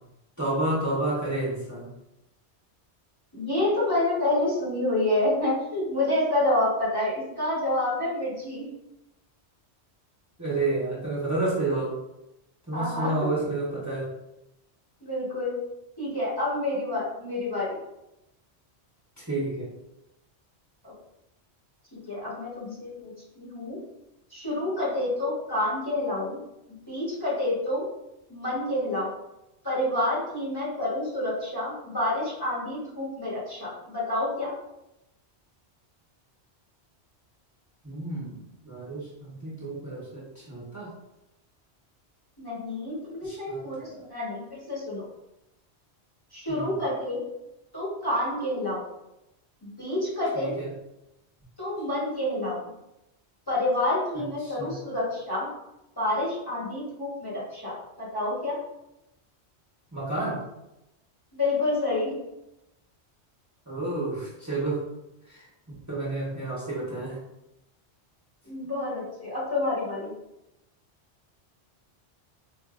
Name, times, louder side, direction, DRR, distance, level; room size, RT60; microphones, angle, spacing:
voice 1, 0.4-1.9 10.4-11.9 12.7-14.1 19.2-19.7 37.8-40.9 43.2-44.0 46.5-46.7 50.3-50.7 54.1-54.8 59.9-60.4 63.7-64.8 65.3-65.5 65.9-67.2, right 2 dB, 15° right, -8 dB, 0.9 m, -30 dB
voice 2, 3.3-8.7 12.7-13.3 15.0-15.6 16.0-17.8 20.8-20.9 21.9-23.8 24.3-26.4 26.9-27.9 28.3-29.1 29.6-34.5 42.4-45.0 46.3-47.2 47.7-48.8 49.6-50.5 51.6-52.6 53.5-55.5 56.0-58.6 61.3-62.1 68.4-70.1, left 1 dB, 20° left, -7 dB, 1.2 m, -28 dB
4.6 x 2.6 x 2.4 m, 0.90 s
omnidirectional pair, 1.1 m